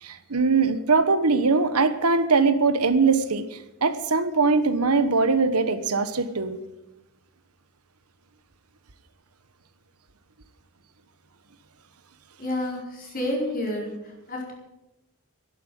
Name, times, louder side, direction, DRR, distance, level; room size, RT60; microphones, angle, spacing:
voice 1, 0.0-6.6, right 4 dB, 85° right, 11 dB, 1.3 m, -21 dB
voice 2, 12.4-14.5, left 1 dB, 40° left, 0 dB, 4.7 m, -30 dB
13.0 x 11.0 x 9.3 m, 0.96 s
head